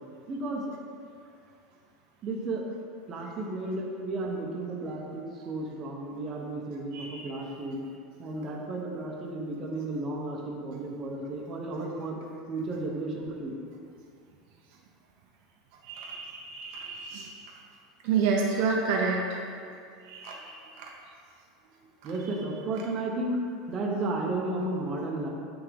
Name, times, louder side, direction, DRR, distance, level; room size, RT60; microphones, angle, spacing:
voice 1, 0.3-0.6 2.2-2.7 3.1-7.8 8.2-12.2 12.5-13.5 22.0-25.3, right 2 dB, 30° right, -1 dB, 0.9 m, -33 dB
voice 2, 6.9-7.3 15.8-17.4 18.0-19.4 20.1-20.9, right 5 dB, 60° right, 0 dB, 0.7 m, -29 dB
9.7 x 3.5 x 3.5 m, 2.3 s
supercardioid pair, 155°, 0 cm